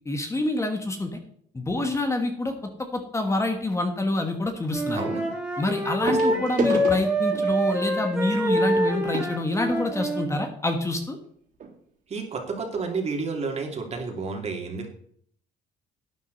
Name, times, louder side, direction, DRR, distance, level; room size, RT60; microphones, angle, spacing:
voice 1, 0.0-1.2 1.5-5.1 5.6-11.2, left 2 dB, 15° left, 5 dB, 1.5 m, -27 dB
sound 1, 2.5-2.8 4.4-4.5 6.1-10.5 11.2-11.3 11.5-11.7 12.3-12.4, right 5 dB, 55° right, 3.4 m, -34 dB
Wind instrument woodwind instrument, 4.7-10.3, right 1 dB, 5° right, 2.8 m, -26 dB
voice 2, 4.9-5.3 6.0-6.4 12.1-14.9, right 4 dB, 40° right, 2 dB, 2.8 m, -31 dB
11.5 x 9.3 x 4.1 m, 0.62 s
cardioid pair, 110°, 17 cm